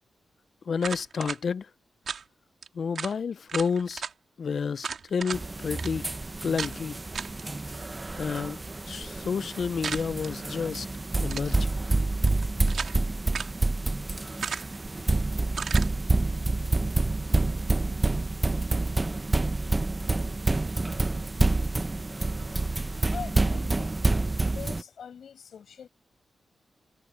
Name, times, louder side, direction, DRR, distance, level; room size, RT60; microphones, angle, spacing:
voice 1, 0.7-1.7 2.7-4.0 4.4-6.1 6.4-7.0 8.2-10.9 11.2-11.6, left 6 dB, 60° left, 0.4 m, -30 dB
sound 1, 0.8-1.4 2.1-2.2 2.6-2.7 3.0-3.2 3.5-4.1 4.8-5.4 5.8-5.9 6.6-6.8 7.1-7.4 9.8-10.3 11.2-11.6 12.3-13.0 13.3-13.6 14.4-14.8 15.5-15.9, right 6 dB, 65° right, 2.1 m, -34 dB
sound 2, 5.3-24.8, right 2 dB, 20° right, 0.9 m, -28 dB
voice 2, 23.1-24.0 24.4-25.9, left 7 dB, 80° left, 7.5 m, -42 dB
wide cardioid pair, 135°, 0 cm